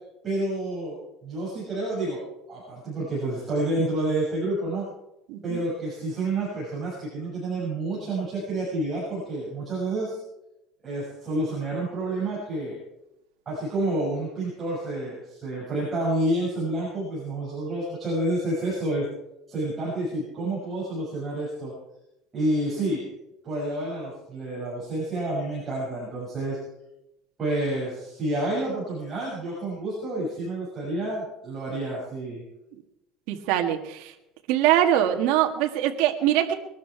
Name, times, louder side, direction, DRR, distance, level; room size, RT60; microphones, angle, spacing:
voice 1, 0.2-2.2 2.5-4.8 5.4-10.2 10.8-12.7 13.4-19.1 19.5-21.7 22.3-23.1 23.4-26.6 27.4-32.4, right 1 dB, 20° right, -8 dB, 6.6 m, -29 dB
voice 2, 33.3-34.1 34.5-36.5, right 11 dB, 70° right, 4 dB, 1.7 m, -23 dB
21.0 x 12.5 x 4.6 m, 0.88 s
cardioid pair, 170°, 0 cm